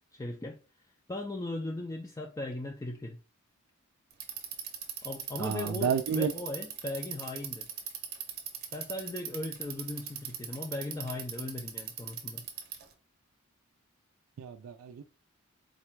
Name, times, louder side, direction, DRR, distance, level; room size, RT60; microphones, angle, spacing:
voice 1, 0.1-0.6 1.1-3.2 5.0-7.7 8.7-12.5, left 2 dB, 15° left, 0.3 m, -38 dB
Bicycle, 4.1-12.9, right 8 dB, 45° right, 0.7 m, -39 dB
voice 2, 5.4-6.3 14.4-15.0, right 7 dB, 70° right, 0.3 m, -31 dB
4.0 x 2.2 x 4.4 m
head